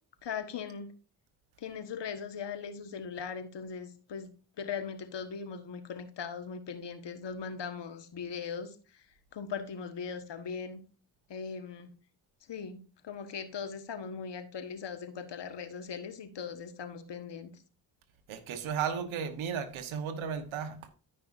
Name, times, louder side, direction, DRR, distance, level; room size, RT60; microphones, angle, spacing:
voice 1, 0.2-0.9 1.6-4.3 4.6-9.1 9.3-10.8 11.3-11.9 12.5-17.6, left 6 dB, 65° left, 1.4 m, -39 dB
voice 2, 18.3-20.8, right 7 dB, 85° right, 1.3 m, -34 dB
14.0 x 5.6 x 2.6 m
supercardioid pair, 55°, 47 cm